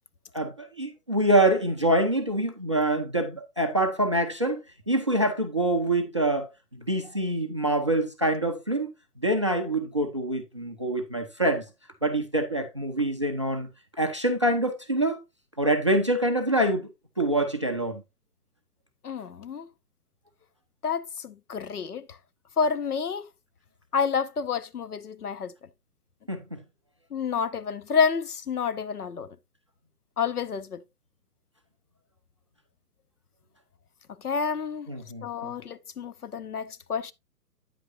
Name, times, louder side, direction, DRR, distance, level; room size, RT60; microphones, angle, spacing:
voice 1, 0.3-4.6 4.9-6.5 6.8-8.9 9.2-11.6 12.0-13.7 14.0-15.2 15.6-16.9 17.2-18.0 26.3-26.6 34.9-35.6, right 1 dB, 20° right, 0.5 m, -25 dB
voice 2, 19.0-19.7 20.8-22.1 22.6-23.3 23.9-25.5 27.1-29.3 30.2-30.8 34.2-34.9 35.2-37.1, left 6 dB, 70° left, 0.9 m, -29 dB
9.2 x 8.1 x 2.6 m
figure-of-eight pair, 130°, 48 cm